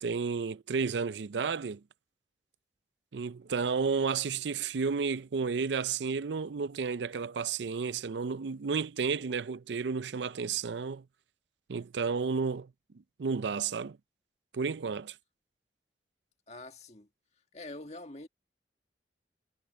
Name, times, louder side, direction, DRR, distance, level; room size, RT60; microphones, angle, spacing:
voice 1, 0.0-1.8 3.1-11.0 11.7-12.7 13.2-14.0 14.5-15.1, right 5 dB, 80° right, 0.5 m, -32 dB
voice 2, 16.5-17.1 17.5-18.3, left 2 dB, 40° left, 1.8 m, -45 dB
head